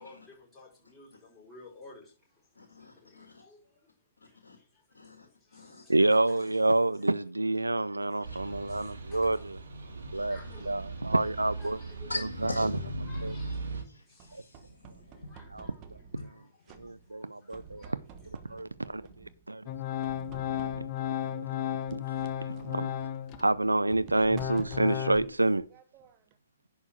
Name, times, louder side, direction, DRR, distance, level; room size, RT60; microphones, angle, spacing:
voice 1, 0.0-2.5 2.9-3.8 4.2-5.1 5.4-6.8 8.2-8.3 8.7-9.5 9.8-10.8 11.2-12.1 13.0-15.8 16.8-18.0 18.4-18.6, left 2 dB, 10° left, 6.5 m, -55 dB
voice 2, 2.5-3.5 4.2-4.6 4.9-5.9 6.3-6.4 8.0-8.5 10.1-10.6 11.1-11.2 12.1-13.0 13.7-15.5 16.1-16.8, left 3 dB, 70° left, 1.7 m, -44 dB
voice 3, 5.9-9.6 10.1-10.4 10.7-11.8 13.2-13.3 14.3-14.4 16.8-18.0 18.5-19.7 20.5-20.8 21.1-22.9 23.4-25.7, right 2 dB, 85° right, 0.5 m, -28 dB
sound 1, 8.2-13.8, right 2 dB, 70° right, 2.5 m, -39 dB
sound 2, 10.7-11.9 12.4-13.8 14.2-16.4 16.7-17.2 17.5-19.5 20.0-21.1 21.9-26.4, right 6 dB, 30° right, 1.1 m, -51 dB
Organ, 19.7-23.5 23.9-25.2, left 10 dB, 30° left, 0.8 m, -34 dB
11.0 x 4.7 x 6.4 m
figure-of-eight pair, 120°, 0 cm